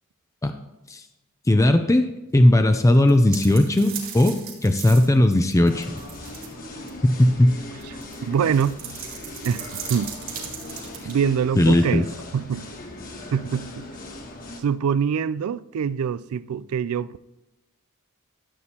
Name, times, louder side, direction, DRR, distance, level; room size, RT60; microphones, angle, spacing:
voice 1, 1.5-6.0 7.0-7.6 11.6-12.0, left 1 dB, 15° left, 0.4 m, -18 dB
sound 1, 2.9-6.5 6.9-7.0 7.8-11.1, right 8 dB, 65° right, 3.0 m, -37 dB
sound 2, 5.6-14.6, left 2 dB, 40° left, 1.3 m, -39 dB
voice 2, 7.9-8.8 9.4-10.1 11.0-12.1 12.3-12.7 13.3-13.8 14.6-17.3, right 7 dB, 85° right, 0.3 m, -25 dB
13.5 x 8.6 x 2.9 m
head